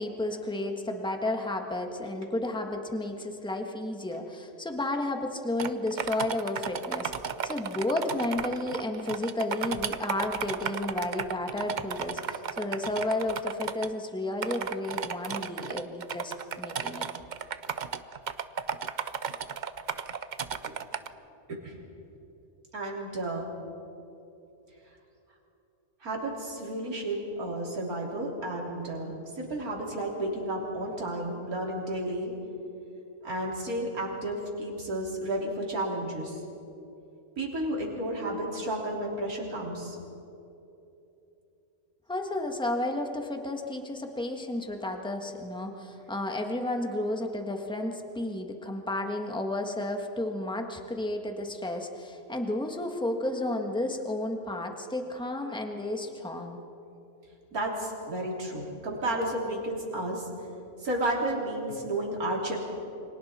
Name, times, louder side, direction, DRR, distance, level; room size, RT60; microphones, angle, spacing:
voice 1, 0.0-7.1 7.4-17.1 42.1-56.6, left 1 dB, 5° left, 3 dB, 1.5 m, -32 dB
sound 1, 5.6-13.9 14.4-21.1, right 7 dB, 50° right, 0.5 m, -34 dB
voice 2, 22.7-23.5 26.0-32.3 33.2-36.4 37.4-40.0 57.5-60.2 60.8-62.6, right 1 dB, 75° right, -2 dB, 3.9 m, -32 dB
29.0 x 25.0 x 4.4 m, 2.9 s
omnidirectional pair, 1.6 m